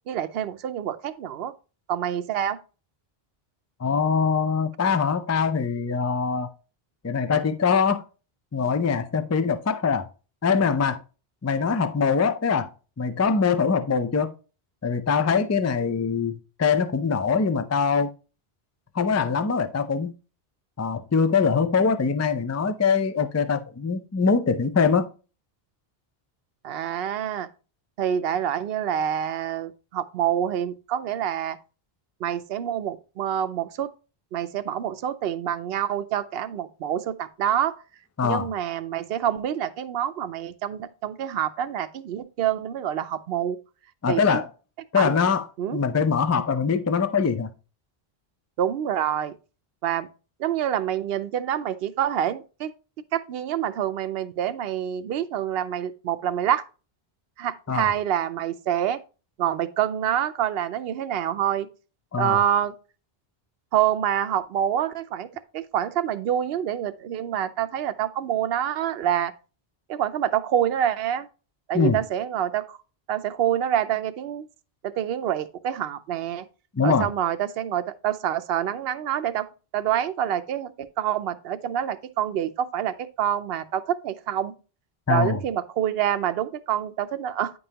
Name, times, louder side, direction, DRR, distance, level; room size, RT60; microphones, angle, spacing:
voice 1, 0.1-1.5 1.9-2.6 26.6-27.5 28.0-31.6 32.2-33.9 34.3-37.7 38.2-43.6 44.1-44.4 45.0-45.1 45.6-45.8 48.6-49.3 49.8-50.1 50.4-52.7 53.1-56.6 57.4-59.0 59.4-61.7 62.2-62.7 63.7-65.3 65.5-69.3 69.9-71.3 71.7-72.8 73.1-74.5 74.8-76.4 76.8-79.5 79.7-84.5 85.1-87.5, right 10 dB, 75° right, 0.8 m, -26 dB
voice 2, 3.8-6.5 7.0-8.0 8.5-10.1 10.4-11.0 11.4-12.7 13.0-14.3 14.8-16.3 16.6-18.1 18.9-20.1 20.8-25.1 38.2-38.5 44.0-44.5 44.9-45.5 45.7-47.5 57.7-57.9 62.1-62.4 71.7-72.0 76.8-77.1 85.1-85.4, left 5 dB, 25° left, 0.3 m, -23 dB
9.5 x 5.4 x 2.8 m
omnidirectional pair, 1.0 m